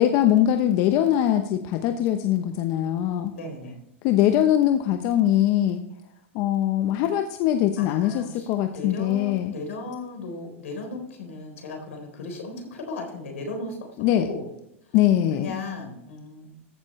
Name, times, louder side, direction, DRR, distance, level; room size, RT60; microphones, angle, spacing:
voice 1, 0.0-3.3 4.0-5.8 6.3-9.5 14.0-14.3 14.9-15.6, left 11 dB, 50° left, 7 dB, 0.9 m, -22 dB
voice 2, 3.3-3.7 7.8-13.8 14.2-14.5 15.4-16.5, left 3 dB, 80° left, 3 dB, 3.9 m, -36 dB
14.5 x 7.2 x 3.2 m, 0.80 s
hypercardioid pair, 115°, 7 cm